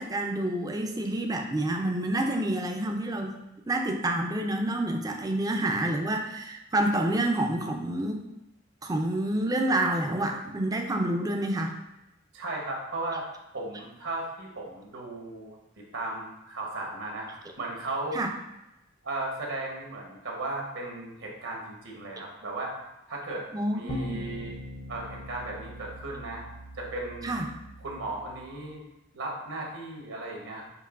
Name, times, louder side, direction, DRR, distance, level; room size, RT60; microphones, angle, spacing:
voice 1, 0.0-3.3 3.7-8.2 8.8-11.8 18.1-18.3 22.2-22.3 23.5-24.2 27.2-27.5, right 1 dB, 20° right, 3 dB, 0.4 m, -28 dB
voice 2, 12.3-13.2 13.5-15.6 15.9-17.3 17.6-18.2 19.0-22.7 23.1-23.5 23.7-24.6 24.9-26.4 26.7-27.3 27.8-28.8 29.1-30.6, right 2 dB, 80° right, -1 dB, 1.0 m, -36 dB
sound 1, 23.9-28.7, left 1 dB, 40° left, 0.5 m, -42 dB
6.5 x 3.0 x 2.4 m, 0.92 s
head